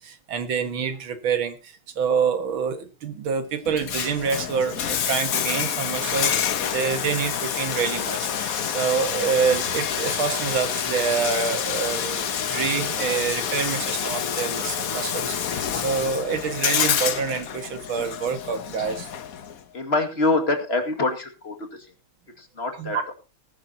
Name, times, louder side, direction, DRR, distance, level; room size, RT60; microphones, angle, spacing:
voice 1, 0.0-19.1 22.8-23.0, right 6 dB, 85° right, 8 dB, 2.4 m, -27 dB
Bathtub (filling or washing), 3.7-19.6, left 8 dB, 55° left, 1.3 m, -27 dB
voice 2, 19.7-21.6 22.4-23.1, left 2 dB, 30° left, 5 dB, 2.2 m, -25 dB
20.0 x 10.5 x 2.8 m, 0.30 s
omnidirectional pair, 2.1 m